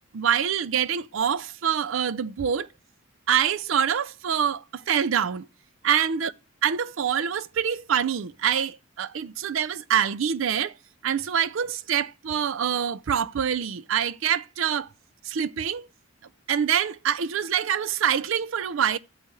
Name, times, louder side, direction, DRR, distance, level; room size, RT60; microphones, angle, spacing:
voice 1, 0.1-2.7 3.3-5.5 5.8-6.3 6.6-10.7 11.0-14.9 15.2-15.9 16.5-19.0, right 8 dB, 70° right, 0.4 m, -25 dB
13.5 x 8.1 x 3.2 m
head